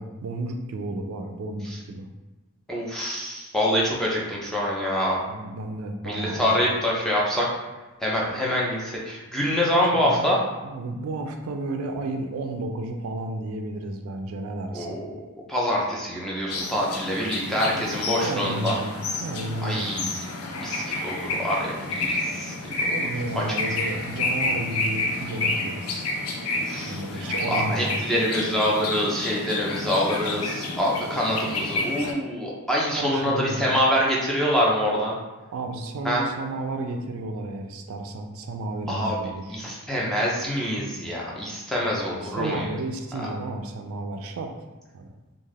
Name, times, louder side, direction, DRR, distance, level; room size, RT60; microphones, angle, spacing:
voice 1, 0.0-2.1 5.3-6.6 9.9-10.3 10.6-15.0 17.7-20.0 22.7-26.1 26.9-27.9 32.9-33.8 35.5-39.6 41.8-44.5 44.9-45.1, right 2 dB, 65° right, 4 dB, 0.3 m, -32 dB
voice 2, 2.7-5.2 6.0-7.5 8.0-10.4 14.7-15.1 15.5-18.8 19.6-20.1 20.6-22.5 26.7-35.1 36.0-36.2 38.9-39.2 39.5-42.7 43.2-43.3, equal, ahead, -5 dB, 0.4 m, -25 dB
sound 1, 16.5-32.1, left 2 dB, 75° left, 0.4 m, -30 dB
2.4 x 2.3 x 3.2 m, 1.2 s
head